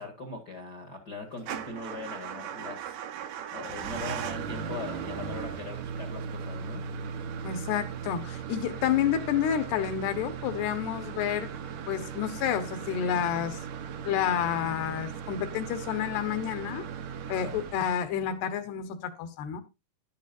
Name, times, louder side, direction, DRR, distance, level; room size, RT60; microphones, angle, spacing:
voice 1, 0.0-6.8, left 3 dB, 50° left, 1.2 m, -41 dB
Motor vehicle (road) / Engine starting / Idling, 1.4-18.4, right 7 dB, 75° right, 1.6 m, -38 dB
voice 2, 7.4-11.5 11.9-13.6 14.0-16.9 17.3-19.6, left 9 dB, 75° left, 3.3 m, -29 dB
11.5 x 11.5 x 2.6 m
omnidirectional pair, 4.8 m